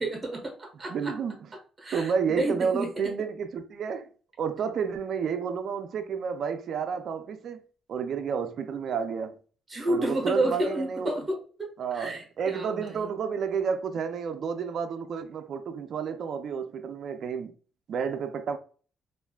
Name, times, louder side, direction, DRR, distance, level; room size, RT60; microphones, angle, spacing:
voice 1, 0.0-1.2 1.8-3.1 9.7-13.1, right 1 dB, 30° right, 1.2 m, -31 dB
voice 2, 0.9-1.4 1.9-4.1 4.4-7.6 7.9-9.4 9.9-11.1 11.8-17.5 17.9-18.6, right 6 dB, 60° right, 0.3 m, -31 dB
3.3 x 2.4 x 2.3 m
cardioid pair, 90°, 0 cm